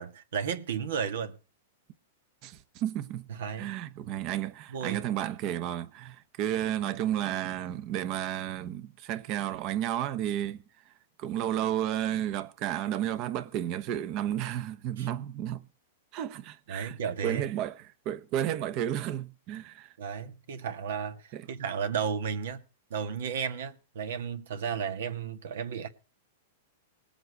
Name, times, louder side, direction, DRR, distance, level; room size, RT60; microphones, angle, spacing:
voice 1, 0.0-1.4 3.3-3.7 4.7-5.0 15.0-15.1 16.7-17.5 20.0-22.6 22.9-25.9, right 7 dB, 75° right, 1.7 m, -33 dB
voice 2, 2.4-3.3 3.6-10.6 11.2-15.6 16.1-17.0 17.2-17.8 18.0-19.9 21.3-21.4, right 11 dB, 40° right, 1.0 m, -32 dB
20.0 x 7.7 x 4.6 m
supercardioid pair, 145°, 0 cm